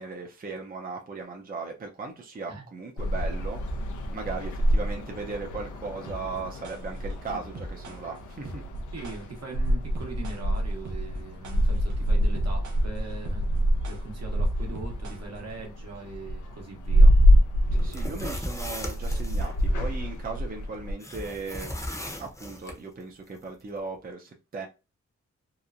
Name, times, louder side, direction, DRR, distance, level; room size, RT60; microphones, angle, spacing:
voice 1, 0.0-8.6 17.7-21.7 22.2-24.7, right 4 dB, 30° right, 0.5 m, -37 dB
sound 1, 3.0-20.9, equal, 90° left, 0.5 m, -26 dB
sound 2, 6.1-15.7, right 2 dB, 80° right, 0.6 m, -43 dB
voice 2, 8.9-13.5 13.8-17.2, right 3 dB, 60° right, 1.0 m, -41 dB
sound 3, 17.8-19.5 21.0-22.8, equal, 10° left, 0.7 m, -37 dB
2.9 x 2.1 x 2.4 m
cardioid pair, 70°, 29 cm